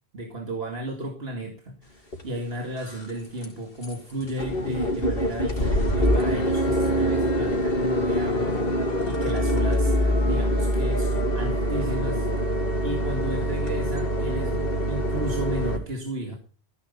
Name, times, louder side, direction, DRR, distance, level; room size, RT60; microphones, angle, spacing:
voice 1, 0.1-16.4, right 1 dB, 75° right, 1 dB, 2.4 m, -34 dB
sound 1, 2.1-2.2 2.7-3.1 3.4-3.5 3.8-15.8, equal, 65° left, 2.4 m, -24 dB
14.5 x 9.7 x 5.5 m, 0.40 s
omnidirectional pair, 1.0 m